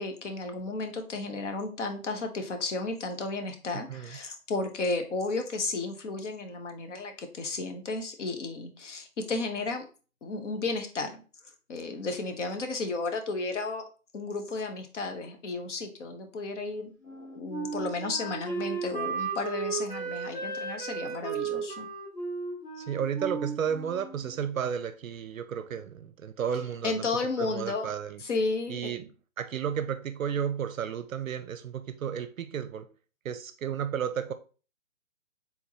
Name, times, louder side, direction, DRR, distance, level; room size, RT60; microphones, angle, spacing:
voice 1, 0.0-9.8 10.2-11.2 11.7-13.8 14.1-21.9 26.8-27.9 28.2-28.9, left 3 dB, 55° left, 1.0 m, -33 dB
Wind instrument woodwind instrument, 17.0-24.5, right 5 dB, 25° left, 1.8 m, -35 dB
voice 2, 22.8-27.1 27.4-28.2 28.7-29.1 29.4-32.9 33.2-34.3, right 8 dB, 65° right, 0.5 m, -32 dB
4.5 x 3.7 x 2.8 m
hypercardioid pair, 155°, 43 cm